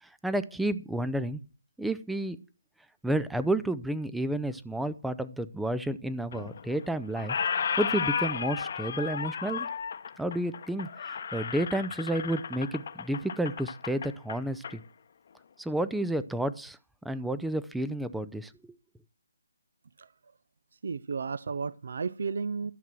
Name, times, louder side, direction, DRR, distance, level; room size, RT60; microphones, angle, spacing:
voice 1, 0.0-1.4 1.8-2.4 3.0-7.4 7.8-9.7 10.2-14.8 15.6-16.8 17.0-18.8, right 1 dB, ahead, 14 dB, 0.5 m, -31 dB
Squeak, 6.3-6.9 7.1-14.8, left 7 dB, 50° left, 0.9 m, -34 dB
voice 2, 20.8-22.7, right 5 dB, 60° right, 18 dB, 0.5 m, -33 dB
12.5 x 6.0 x 7.5 m, 0.37 s
figure-of-eight pair, 150°, 0 cm